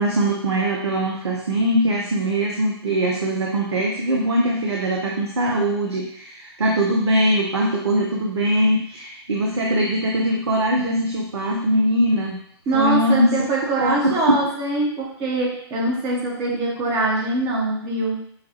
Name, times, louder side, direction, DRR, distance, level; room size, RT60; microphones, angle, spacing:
voice 1, 0.0-12.4 12.7-13.5 13.8-14.5, right 1 dB, 70° right, -1 dB, 0.7 m, -21 dB
voice 2, 12.7-18.2, right 2 dB, 25° right, -3 dB, 0.9 m, -23 dB
5.8 x 2.2 x 2.8 m, 0.66 s
figure-of-eight pair, 120°, 14 cm